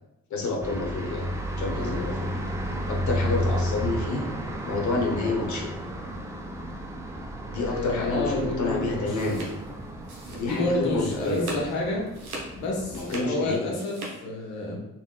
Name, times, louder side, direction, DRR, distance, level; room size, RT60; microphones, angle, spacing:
voice 1, 0.3-1.3 1.6-2.3 2.9-4.3 4.6-5.7 7.5-9.5 10.4-11.5 12.9-13.6, left 3 dB, 45° left, 0 dB, 0.9 m, -29 dB
sound 1, 0.6-13.1, equal, 5° right, 0.4 m, -33 dB
voice 2, 7.5-9.2 9.9-10.0 10.3-12.1 12.6-14.8, left 2 dB, 80° left, -2 dB, 0.7 m, -29 dB
sound 2, 8.9-10.8 11.1-11.7 12.1-14.1, right 2 dB, 90° right, 0.5 m, -39 dB
3.4 x 2.2 x 2.3 m, 0.90 s
figure-of-eight pair, 40°, 42 cm